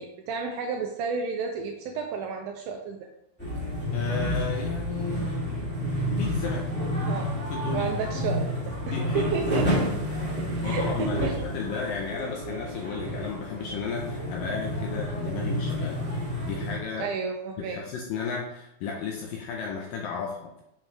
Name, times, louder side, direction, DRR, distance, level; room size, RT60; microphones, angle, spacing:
voice 1, 0.0-3.1 7.1-7.3 7.7-9.9 10.4-11.4 17.0-17.8, right 5 dB, 85° right, 3 dB, 2.1 m, -32 dB
sound 1, 3.4-16.8, equal, 5° left, 1.0 m, -30 dB
voice 2, 3.9-5.7 6.2-6.7 7.5-8.2 8.9-9.3 10.5-16.0 16.4-17.1 17.6-20.6, left 6 dB, 80° left, 0 dB, 2.0 m, -34 dB
7.7 x 5.3 x 3.1 m, 0.82 s
omnidirectional pair, 4.6 m